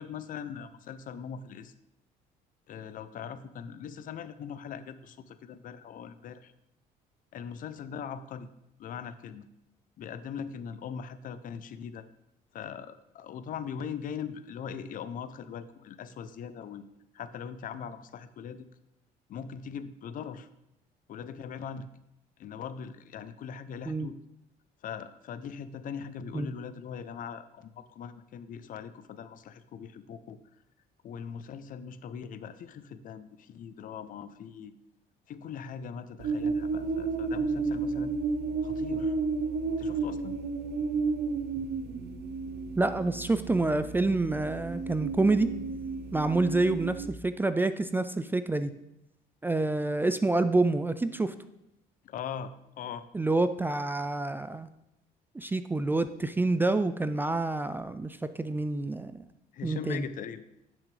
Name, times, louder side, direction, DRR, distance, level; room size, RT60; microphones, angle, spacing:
voice 1, 0.0-1.7 2.7-6.5 7.3-8.5 8.8-9.5 10.0-12.1 12.5-16.9 17.1-18.7 19.3-20.5 21.1-21.9 22.4-24.2 24.8-30.4 31.0-34.7 35.3-38.1 38.6-39.2 39.8-40.4 52.0-53.1 59.5-60.4, left 7 dB, 55° left, 13 dB, 0.5 m, -40 dB
sound 1, 36.2-47.1, right 4 dB, 75° right, 0.9 m, -32 dB
voice 2, 42.8-45.5 46.1-48.7 49.4-51.3 53.1-54.7 55.3-59.2 59.6-60.0, right 2 dB, 10° right, 12 dB, 0.3 m, -27 dB
10.5 x 6.2 x 3.3 m, 0.86 s
cardioid pair, 110°, 17 cm